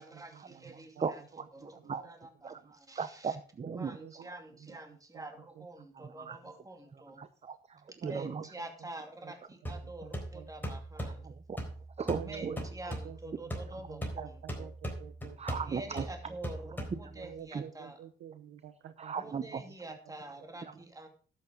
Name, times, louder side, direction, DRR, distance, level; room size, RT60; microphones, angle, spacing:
voice 1, 0.0-1.2 1.5-3.4 3.7-7.2 7.9-11.3 12.2-14.7 15.6-18.0 19.1-21.1, right 2 dB, 15° right, 5 dB, 2.6 m, -47 dB
voice 2, 0.7-2.0 2.4-2.6 2.9-4.0 5.9-6.4 7.2-8.4 11.2-11.6 12.0-12.6 15.4-16.1 16.9-17.0 17.5-17.6 19.0-19.6 20.6-20.7, right 6 dB, 30° right, 12 dB, 0.8 m, -37 dB
voice 3, 3.8-4.3 5.1-5.2 8.0-8.5 10.0-10.5 12.1-13.2 13.9-15.6 17.2-19.1, right 10 dB, 80° right, 12 dB, 1.1 m, -48 dB
sound 1, 9.7-17.4, right 1 dB, 10° left, 4.0 m, -40 dB
11.5 x 8.7 x 5.2 m, 0.41 s
cardioid pair, 90°, 20 cm